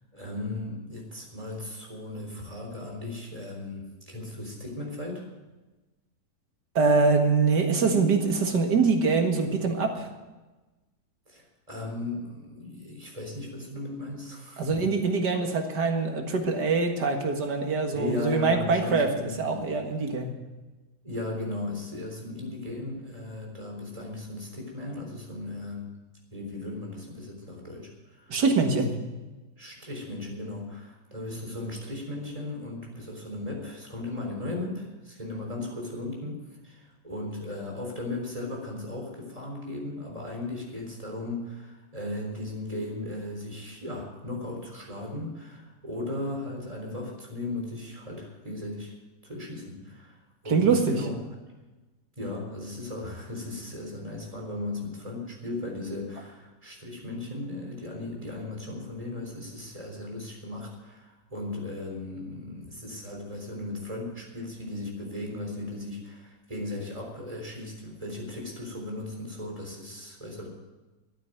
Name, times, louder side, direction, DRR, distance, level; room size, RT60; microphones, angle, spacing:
voice 1, 0.1-5.3 7.9-8.1 11.3-14.9 17.9-19.6 21.0-25.9 26.3-28.4 29.6-48.9 49.2-51.2 52.2-70.5, left 2 dB, 20° right, 0 dB, 3.9 m, -36 dB
voice 2, 6.8-10.1 14.6-20.3 28.3-28.9 50.5-51.0, right 4 dB, 90° right, 4 dB, 2.3 m, -24 dB
13.0 x 9.1 x 9.1 m, 1.2 s
omnidirectional pair, 1.7 m